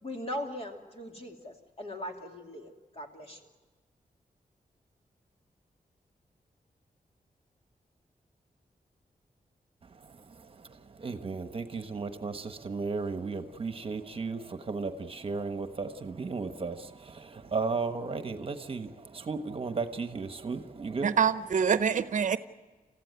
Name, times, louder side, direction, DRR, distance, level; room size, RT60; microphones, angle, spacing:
voice 1, 0.0-3.4, left 1 dB, 40° left, 3 dB, 2.7 m, -40 dB
voice 2, 9.8-21.1, right 4 dB, 40° right, 8 dB, 1.2 m, -35 dB
voice 3, 21.0-22.4, right 7 dB, 60° right, 13 dB, 0.8 m, -25 dB
29.0 x 15.5 x 9.5 m, 1.4 s
wide cardioid pair, 175°, 15 cm